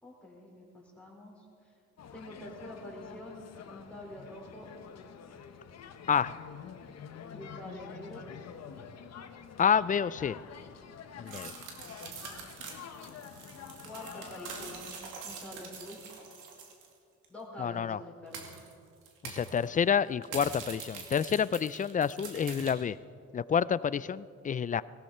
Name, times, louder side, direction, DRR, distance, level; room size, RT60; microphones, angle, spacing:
voice 1, 0.0-1.7 2.1-4.7 7.3-8.2 11.8-12.3 13.8-15.0 15.2-16.0 17.3-18.5, left 1 dB, 5° left, -4 dB, 4.9 m, -46 dB
sound 1, 2.0-14.9, left 7 dB, 60° left, 1.2 m, -48 dB
voice 2, 9.6-10.4 11.2-11.6 17.6-18.0 19.2-23.0 23.3-24.8, left 7 dB, 25° left, 18 dB, 0.4 m, -28 dB
sound 2, 11.3-16.9 17.2-17.3 18.3-18.7 19.1-19.7 20.2-22.7, right 5 dB, 90° right, 2.4 m, -44 dB
18.5 x 16.5 x 4.4 m, 2.4 s
cardioid pair, 90°, 30 cm